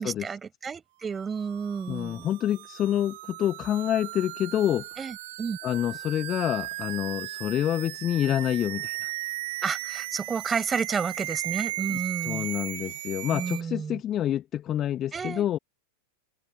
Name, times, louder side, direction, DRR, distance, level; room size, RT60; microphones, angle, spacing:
voice 1, 0.0-2.3 5.0-5.6 9.6-12.5 13.3-14.0 15.1-15.6, right 6 dB, 20° right, 5.4 m, -31 dB
sound 1, 1.4-13.6, right 18 dB, 50° right, 2.2 m, -36 dB
voice 2, 1.9-4.9 5.6-9.1 11.9-12.0 12.2-15.6, left 11 dB, 30° left, 1.7 m, -27 dB
figure-of-eight pair, 90°, 0 cm